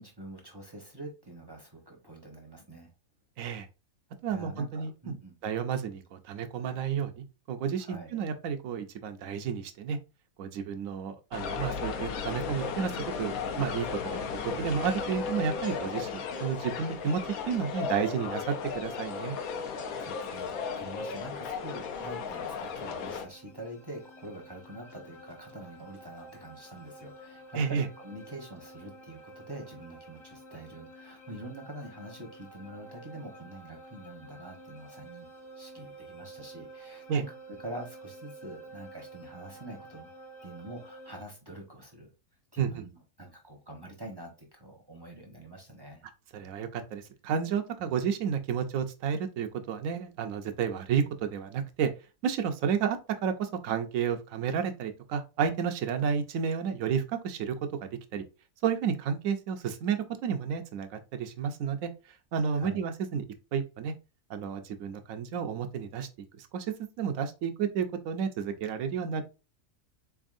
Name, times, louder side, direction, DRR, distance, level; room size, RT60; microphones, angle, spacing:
voice 1, 0.0-2.9 4.3-5.3 7.8-8.2 20.0-35.3 35.6-40.1 40.4-42.1 42.5-46.1 47.8-47.9 62.5-62.9, right 1 dB, 20° right, 1 dB, 0.7 m, -45 dB
voice 2, 4.2-5.1 5.4-10.0 10.4-12.9 13.2-17.2 17.5-19.4 27.5-27.9 37.1-37.2 42.6-42.8 46.3-51.9 52.2-58.2 58.6-61.9 62.3-63.2 63.5-63.9 64.3-66.1 66.4-69.2, right 7 dB, 70° right, 8 dB, 0.9 m, -31 dB
sound 1, 11.3-23.3, left 6 dB, 70° left, 1.0 m, -35 dB
sound 2, 22.9-41.2, right 2 dB, 35° left, 0.9 m, -50 dB
4.0 x 3.5 x 2.4 m, 0.30 s
omnidirectional pair, 1.6 m